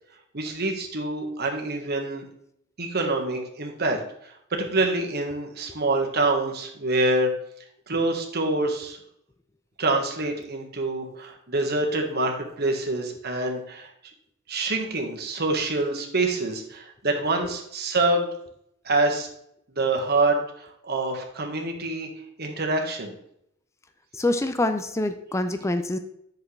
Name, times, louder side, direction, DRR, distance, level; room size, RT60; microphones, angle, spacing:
voice 1, 0.3-2.2 2.8-4.0 4.5-7.3 7.9-9.0 9.8-13.9 14.5-18.3 18.8-19.3 19.7-22.1 22.4-23.1, right 2 dB, 50° right, 2 dB, 1.5 m, -26 dB
voice 2, 24.1-26.0, left 2 dB, 15° left, 8 dB, 0.5 m, -25 dB
8.4 x 6.6 x 3.3 m, 0.73 s
head